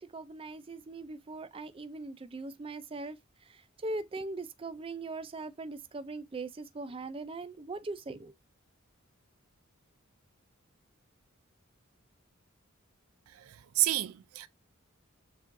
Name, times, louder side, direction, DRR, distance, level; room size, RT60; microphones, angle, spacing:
voice 1, 0.1-3.2 3.5-8.3, right 2 dB, 25° right, 0.4 m, -40 dB
voice 2, 13.4-14.5, right 15 dB, 90° right, 0.4 m, -30 dB
7.1 x 2.4 x 2.5 m
head